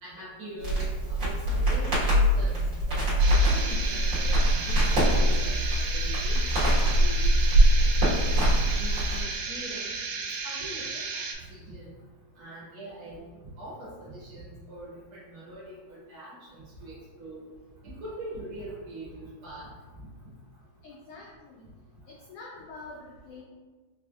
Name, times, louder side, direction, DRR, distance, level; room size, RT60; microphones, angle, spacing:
voice 1, 0.0-0.8 1.2-6.6 7.0-7.2 7.5-7.9 8.1-9.9 10.4-10.8 11.1-11.2 11.5-11.9 12.4-13.2 13.6-17.4 17.8-19.7, right 1 dB, 60° right, -8 dB, 1.6 m, -42 dB
Crackle, 0.6-9.2, right 1 dB, 40° right, 1.4 m, -23 dB
sound 1, 3.2-11.3, right 4 dB, 85° right, 2.0 m, -34 dB
voice 2, 20.8-21.7 22.1-23.4, left 3 dB, 80° left, -4 dB, 1.3 m, -46 dB
5.0 x 3.3 x 2.4 m, 1.4 s
omnidirectional pair, 3.3 m